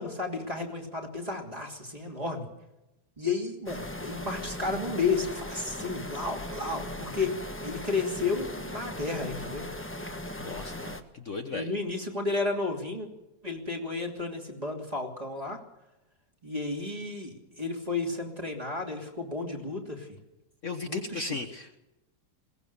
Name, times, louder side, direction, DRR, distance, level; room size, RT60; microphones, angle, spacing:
voice 1, 0.0-2.5 3.2-9.7 11.5-13.1 13.4-15.6 16.4-20.1 20.8-21.4, left 3 dB, 20° right, 1 dB, 3.0 m, -32 dB
sound 1, 3.7-11.0, left 1 dB, 10° left, 1.1 m, -38 dB
voice 2, 10.4-11.7 20.6-21.8, left 3 dB, 45° left, 5 dB, 1.4 m, -36 dB
21.5 x 18.0 x 6.9 m, 0.99 s
omnidirectional pair, 1.9 m